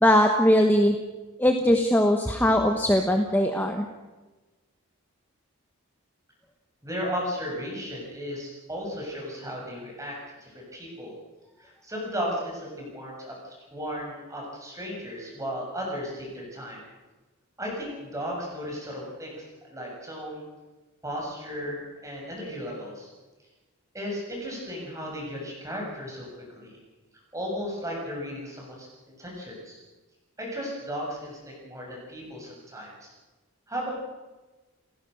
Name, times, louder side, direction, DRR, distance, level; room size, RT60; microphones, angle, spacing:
voice 1, 0.0-1.0 1.4-3.8, left 1 dB, 10° left, 4 dB, 1.2 m, -20 dB
voice 2, 6.8-11.1 11.6-16.8 17.6-20.5 21.0-23.1 23.9-26.3 26.6-26.7 27.3-28.9 29.2-29.8 30.4-33.1 33.7-33.9, equal, 15° right, -2 dB, 7.2 m, -35 dB
30.0 x 15.5 x 6.5 m, 1.2 s
head